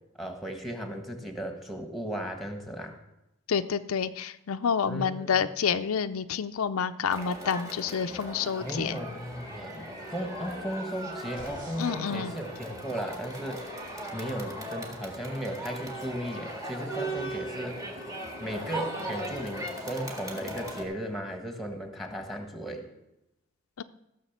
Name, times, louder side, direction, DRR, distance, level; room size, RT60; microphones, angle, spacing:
voice 1, 0.2-3.0 4.9-5.4 8.6-13.8 14.1-17.8 18.4-22.9, equal, ahead, 5 dB, 1.5 m, -36 dB
voice 2, 3.5-9.0 11.8-12.3 23.8-23.9, left 6 dB, 90° left, 10 dB, 0.5 m, -29 dB
Crowd, 7.1-20.8, right 1 dB, 15° right, 1.7 m, -38 dB
sound 1, 8.5-12.0, right 2 dB, 35° right, 2.3 m, -48 dB
15.5 x 6.3 x 7.2 m, 0.90 s
head